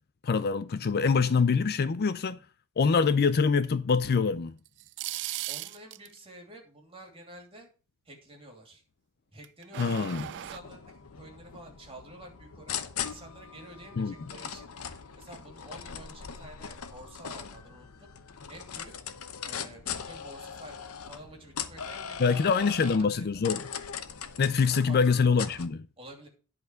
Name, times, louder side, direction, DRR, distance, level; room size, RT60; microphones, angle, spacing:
voice 1, 0.2-2.4 2.8-4.5 9.8-10.3 14.0-14.1 22.2-23.6 24.4-25.9, left 5 dB, 45° left, 0.5 m, -25 dB
sound 1, 4.7-6.1 9.4-10.6, right 14 dB, 55° right, 0.3 m, -37 dB
voice 2, 5.5-7.7 8.0-8.8 9.3-14.7 15.1-18.1 18.5-18.9 19.4-23.3 24.7-25.2 26.0-26.3, right 1 dB, 25° right, 2.8 m, -49 dB
sound 2, 10.1-25.7, left 7 dB, 75° left, 0.9 m, -40 dB
11.0 x 4.3 x 6.3 m
head